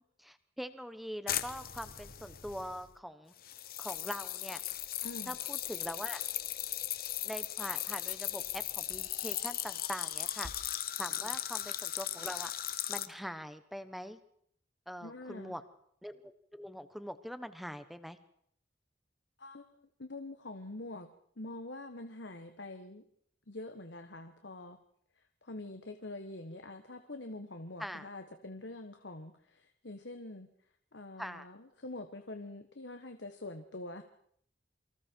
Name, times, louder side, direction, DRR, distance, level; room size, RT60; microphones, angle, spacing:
voice 1, 0.0-3.3 3.8-4.6 5.3-6.2 7.2-10.5 11.0-12.5 12.9-14.2 14.9-15.6 16.0-18.2 27.8-28.1 31.2-31.5, equal, ahead, 11 dB, 1.3 m, -43 dB
sound 1, 1.3-2.9 3.4-13.1, left 12 dB, 50° left, 1.3 m, -38 dB
voice 2, 5.0-5.3 11.2-11.3 15.0-15.6 19.4-21.1 21.4-23.0 23.5-24.8 25.2-30.5 30.9-34.0, left 2 dB, 70° left, 7 dB, 1.5 m, -45 dB
28.5 x 25.0 x 4.7 m, 0.66 s
head